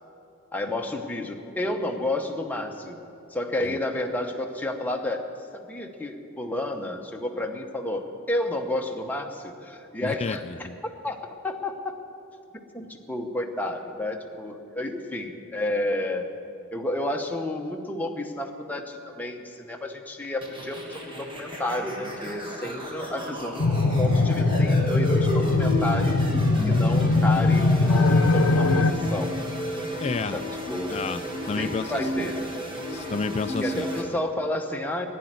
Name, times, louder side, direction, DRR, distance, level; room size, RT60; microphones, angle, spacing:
voice 1, 0.5-3.0 3.3-5.3 5.5-8.0 8.3-11.2 11.4-12.0 12.7-16.3 16.7-23.7 24.0-26.2 26.7-29.4 30.3-31.0 31.6-32.4 33.6-35.1, left 1 dB, 10° left, 2 dB, 0.9 m, -31 dB
voice 2, 10.0-10.8 30.0-30.4 30.9-32.3 32.9-33.9, left 4 dB, 30° left, 9 dB, 0.3 m, -31 dB
sound 1, 20.4-34.0, equal, 20° right, 1.6 m, -33 dB
sound 2, 23.6-28.9, left 3 dB, 70° left, 0.7 m, -21 dB
11.5 x 10.0 x 9.4 m, 2.7 s
head